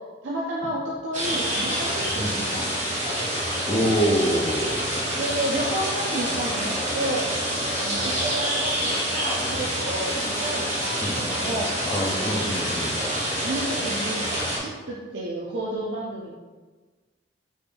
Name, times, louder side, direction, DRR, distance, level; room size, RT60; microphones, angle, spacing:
voice 1, 0.2-3.0 5.2-7.3 7.8-8.7 9.1-11.7 13.4-14.3 14.6-16.3, right 1 dB, 75° right, -4 dB, 0.5 m, -31 dB
sound 1, 1.1-14.6, equal, 40° right, 0.9 m, -27 dB
voice 2, 3.7-4.9 11.0-11.2 11.8-13.0, equal, 20° left, -2 dB, 0.4 m, -25 dB
4.2 x 3.4 x 2.2 m, 1.3 s
head